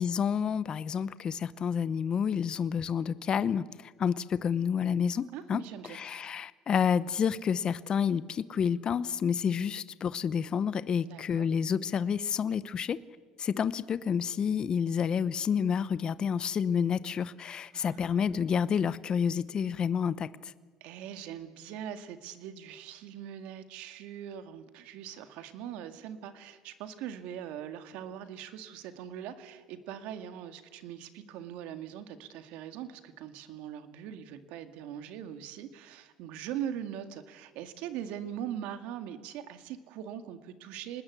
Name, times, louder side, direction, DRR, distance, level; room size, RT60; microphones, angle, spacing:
voice 1, 0.0-13.0 13.4-20.3, left 7 dB, 40° left, 16 dB, 0.8 m, -29 dB
voice 2, 5.3-6.0 11.1-11.5 17.7-18.3 20.8-41.0, right 10 dB, 75° right, 9 dB, 2.0 m, -41 dB
26.5 x 20.0 x 8.3 m, 1.5 s
supercardioid pair, 95°, 2 cm